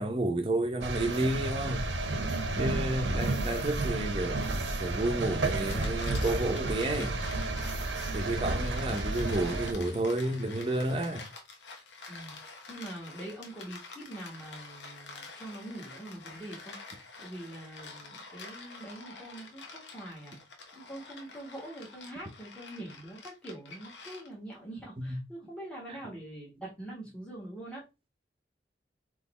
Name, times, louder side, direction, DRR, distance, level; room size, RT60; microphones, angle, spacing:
voice 1, 0.0-1.9 2.6-4.5 4.8-7.2 8.1-11.3 25.0-25.2 25.9-26.0, right 1 dB, 30° right, 0.8 m, -31 dB
sound 1, 0.8-9.7, right 2 dB, 85° right, 0.8 m, -32 dB
voice 2, 2.7-3.0 12.1-16.8 17.2-20.4 20.7-27.8, right 1 dB, 5° left, 1.6 m, -44 dB
sound 2, 5.7-24.6, left 3 dB, 85° left, 1.0 m, -48 dB
4.0 x 3.1 x 4.2 m
head